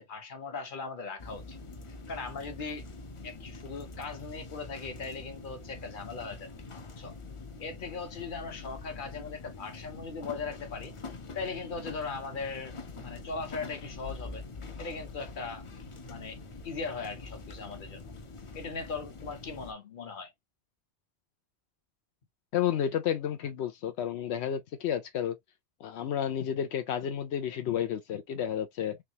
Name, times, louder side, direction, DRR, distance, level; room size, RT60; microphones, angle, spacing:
voice 1, 0.0-1.6 2.1-2.8 3.2-6.5 7.0-7.2 7.6-10.9 11.3-12.8 13.0-14.5 14.8-15.6 16.1-16.4 16.6-18.1 18.5-20.3, left 4 dB, 55° left, 1.2 m, -39 dB
sound 1, 1.2-19.7, left 3 dB, 35° left, 0.6 m, -45 dB
voice 2, 22.5-25.4 25.8-29.0, left 9 dB, 85° left, 0.9 m, -31 dB
3.5 x 3.1 x 2.7 m
omnidirectional pair, 1.1 m